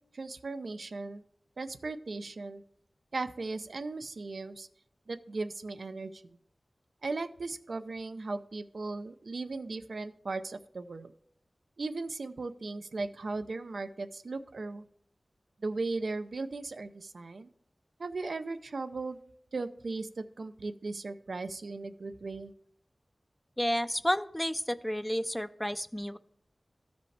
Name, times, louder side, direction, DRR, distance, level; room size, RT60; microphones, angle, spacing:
voice 1, 0.1-1.2 1.6-2.6 3.1-4.7 5.1-6.2 7.0-11.1 11.8-14.9 15.6-17.5 18.0-19.2 19.5-22.5, right 3 dB, 85° right, 10 dB, 0.5 m, -37 dB
voice 2, 23.6-26.2, equal, 10° left, 14 dB, 0.4 m, -31 dB
14.5 x 5.1 x 3.3 m, 0.68 s
wide cardioid pair, 80°, 0 cm